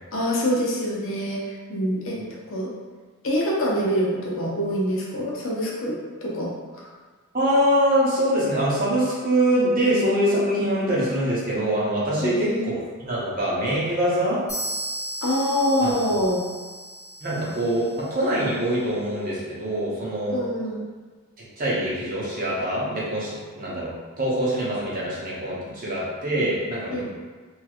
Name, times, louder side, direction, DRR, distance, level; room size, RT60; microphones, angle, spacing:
voice 1, 0.1-2.2 2.5-2.7 3.2-6.9 12.2-12.7 15.2-16.4 20.3-20.9 26.9-27.0, equal, 65° left, -4 dB, 0.7 m, -25 dB
voice 2, 7.3-12.7 13.0-14.4 15.8-15.9 17.2-20.3 21.6-27.0, right 1 dB, 40° right, -7 dB, 0.9 m, -24 dB
sound 1, 14.5-18.2, right 1 dB, 15° left, 1.0 m, -35 dB
3.1 x 2.8 x 2.4 m, 1.4 s
head